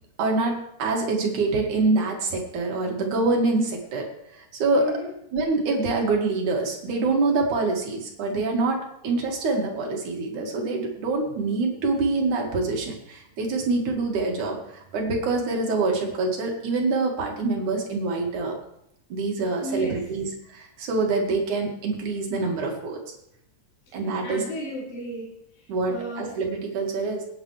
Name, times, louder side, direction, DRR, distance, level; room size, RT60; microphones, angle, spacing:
voice 1, 0.2-4.8 5.3-18.5 19.1-23.0 23.9-24.4 25.7-27.2, right 3 dB, 65° right, 0 dB, 3.3 m, -25 dB
voice 2, 4.7-5.1 19.5-20.1 23.9-24.0 24.2-26.4, equal, 55° left, -8 dB, 5.4 m, -34 dB
24.5 x 9.6 x 3.3 m, 0.79 s
omnidirectional pair, 4.0 m